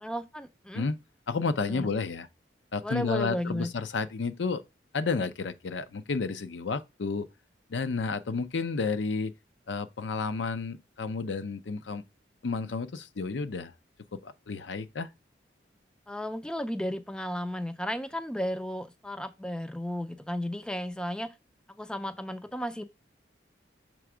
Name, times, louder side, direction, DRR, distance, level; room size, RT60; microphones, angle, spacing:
voice 1, 0.0-0.9 1.7-1.9 2.8-3.7 16.1-21.3 21.8-22.8, equal, 5° left, 0.3 m, -34 dB
voice 2, 1.3-2.3 2.7-4.6 4.9-7.3 7.7-9.3 9.7-12.0 12.4-13.7 14.1-15.1, left 4 dB, 80° left, 0.5 m, -31 dB
6.1 x 3.4 x 4.8 m
head